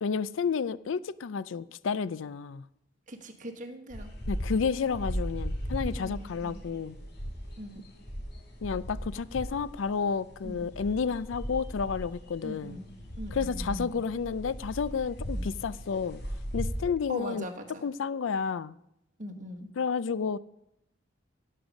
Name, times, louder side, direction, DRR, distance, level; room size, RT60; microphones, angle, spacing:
voice 1, 0.0-2.6 4.3-7.0 8.6-12.8 13.3-16.2 16.5-17.5 17.8-18.7 19.8-20.4, left 5 dB, 75° left, 18 dB, 0.4 m, -31 dB
voice 2, 3.1-4.1 6.0-6.6 7.6-7.8 10.4-10.7 12.4-12.9 13.2-13.9 15.3-15.5 17.1-17.8 19.2-19.7, equal, 40° right, 3 dB, 1.6 m, -40 dB
sound 1, 3.9-16.8, equal, 55° left, 3.7 m, -37 dB
16.5 x 6.7 x 6.3 m, 0.80 s
head